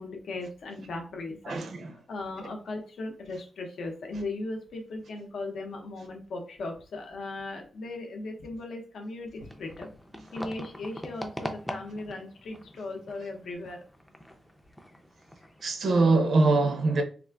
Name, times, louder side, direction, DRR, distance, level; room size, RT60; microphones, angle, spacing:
voice 1, 0.0-1.6 1.9-9.9 10.3-13.8, left 2 dB, 70° left, 0.6 m, -37 dB
voice 2, 1.5-1.9 15.6-17.0, right 3 dB, 60° right, 0.5 m, -23 dB
sound 1, 9.4-16.2, equal, 5° left, 0.4 m, -43 dB
3.6 x 2.4 x 2.2 m
wide cardioid pair, 170°, 0 cm